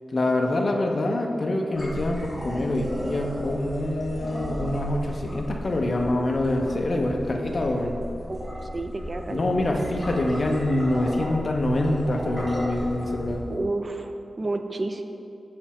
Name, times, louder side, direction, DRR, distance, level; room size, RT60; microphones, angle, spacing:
voice 1, 0.1-8.0 9.3-13.4, left 1 dB, 45° left, 1 dB, 0.8 m, -25 dB
sound 1, 1.8-13.6, equal, 5° right, 1.4 m, -35 dB
voice 2, 8.7-10.0 13.5-15.0, right 2 dB, 35° right, 6 dB, 0.5 m, -31 dB
7.7 x 6.1 x 4.3 m, 2.7 s
wide cardioid pair, 135°, 0 cm